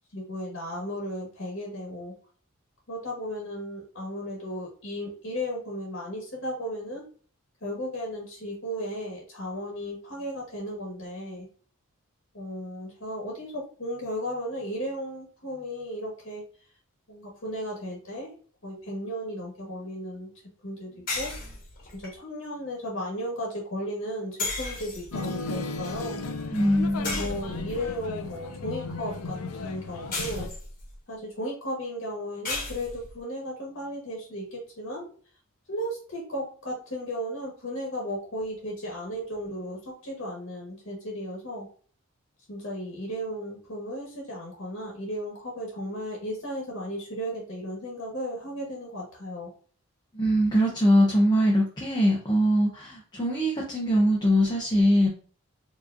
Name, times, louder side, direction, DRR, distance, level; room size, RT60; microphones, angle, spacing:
voice 1, 0.1-2.1 2.9-7.0 7.6-11.5 12.3-16.4 17.1-18.3 18.6-20.3 20.6-21.3 21.9-26.2 27.0-30.5 31.1-35.1 35.7-41.7 42.5-49.5, equal, 60° left, -2 dB, 1.3 m, -35 dB
sound 1, 21.1-22.1 24.4-25.4 27.0-27.9 30.1-31.0 32.4-33.2, left 2 dB, 40° left, 1.3 m, -34 dB
sound 2, 25.1-30.5, left 3 dB, 90° left, 0.5 m, -35 dB
voice 2, 26.5-27.3 50.1-55.1, equal, 20° left, -3 dB, 0.7 m, -22 dB
4.7 x 3.0 x 2.5 m, 0.43 s
head